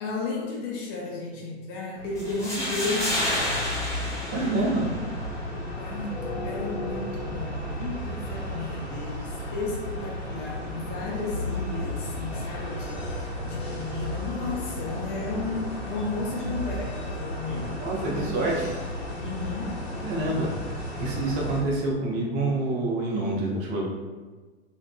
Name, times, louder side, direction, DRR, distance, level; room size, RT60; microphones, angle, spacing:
voice 1, 0.0-3.6 4.1-4.7 5.5-18.7 19.1-19.8, left 3 dB, 35° left, -1 dB, 0.5 m, -34 dB
sound 1, 1.9-21.6, left 1 dB, 85° left, 0.8 m, -34 dB
sound 2, 2.2-5.2, equal, 10° left, 0.8 m, -30 dB
voice 2, 4.3-4.9 17.8-18.5 20.0-23.8, right 2 dB, 40° right, -3 dB, 0.7 m, -27 dB
2.6 x 2.4 x 2.2 m, 1.3 s
figure-of-eight pair, 90°, 32 cm